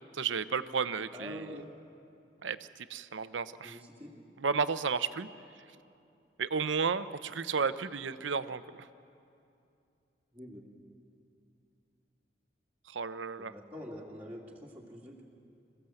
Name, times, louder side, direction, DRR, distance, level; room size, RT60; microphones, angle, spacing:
voice 1, 0.1-1.6 2.4-3.8 4.4-5.3 6.4-8.9 12.9-13.5, right 5 dB, 90° right, 13 dB, 0.7 m, -33 dB
voice 2, 1.1-1.7 3.6-4.1 10.3-10.7 13.4-15.2, left 1 dB, 10° right, -4 dB, 2.5 m, -46 dB
26.5 x 15.5 x 7.8 m, 2.6 s
head